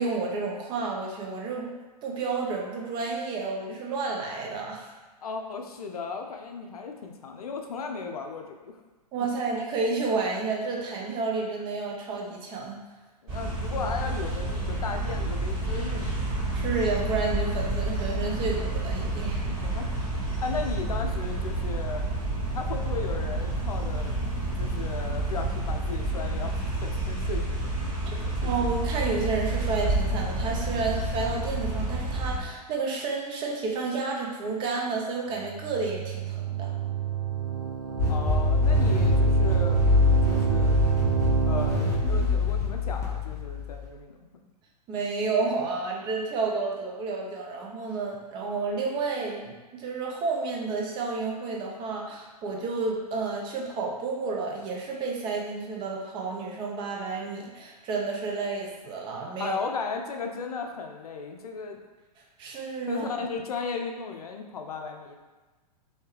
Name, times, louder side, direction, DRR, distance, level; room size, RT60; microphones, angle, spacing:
voice 1, 0.0-1.7 2.0-4.9 9.1-12.8 16.5-19.5 28.4-36.7 42.0-42.3 44.9-59.6 62.4-63.1, right 4 dB, 25° right, -1 dB, 0.5 m, -30 dB
voice 2, 5.2-8.8 13.2-16.3 19.6-19.9 20.4-22.1 22.5-24.2 24.6-27.9 28.2-28.7 38.1-39.8 40.3-40.9 41.5-44.2 59.4-61.8 62.9-65.2, left 5 dB, 65° left, 4 dB, 0.5 m, -35 dB
sound 1, 13.3-32.4, right 2 dB, 40° right, 1.5 m, -29 dB
sound 2, 35.4-42.2, right 10 dB, 70° right, 0.5 m, -27 dB
sound 3, 38.0-43.9, left 4 dB, 15° left, 0.8 m, -24 dB
3.2 x 2.7 x 3.2 m, 1.2 s
figure-of-eight pair, 110°, 21 cm